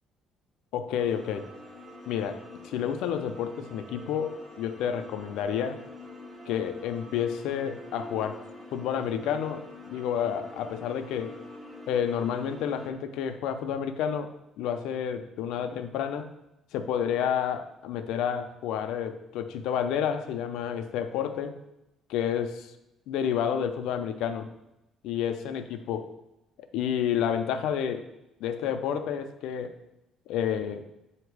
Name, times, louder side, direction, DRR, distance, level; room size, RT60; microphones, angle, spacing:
voice 1, 0.7-1.5 2.1-5.8 6.5-11.4 11.9-16.3 16.7-21.6 22.1-22.7 23.1-24.5 25.0-25.6 25.9-26.1 26.7-28.1 28.4-29.7 30.3-30.8, left 8 dB, 80° left, 8 dB, 0.5 m, -30 dB
sound 1, 1.0-12.9, left 1 dB, ahead, 0.7 m, -46 dB
7.8 x 2.9 x 4.7 m, 0.91 s
cardioid pair, 165°, 0 cm